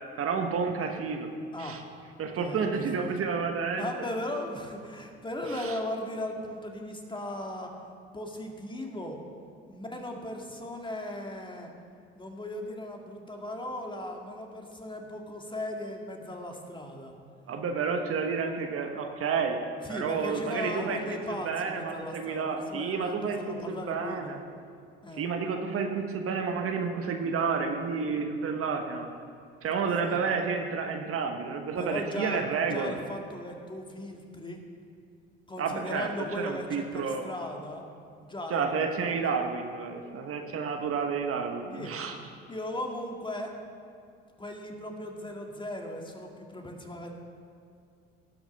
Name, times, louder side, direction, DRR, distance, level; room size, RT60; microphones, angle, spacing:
voice 1, 0.2-1.3 1.6-1.8 2.2-3.9 5.6-5.7 17.5-19.6 19.9-21.2 21.4-24.4 25.2-29.1 29.6-33.0 35.6-36.1 36.4-37.2 38.5-42.1, right 5 dB, 50° right, 5 dB, 1.2 m, -30 dB
voice 2, 2.4-3.1 3.8-7.7 8.1-9.2 9.7-11.7 12.2-17.2 19.8-24.4 25.0-25.3 30.1-30.2 31.8-32.4 32.7-34.6 35.5-37.8 38.2-39.2 41.7-42.0 42.5-43.5 44.4-47.1, left 1 dB, 15° left, 2 dB, 1.9 m, -37 dB
18.5 x 6.1 x 5.3 m, 2.4 s
hypercardioid pair, 75°, 29 cm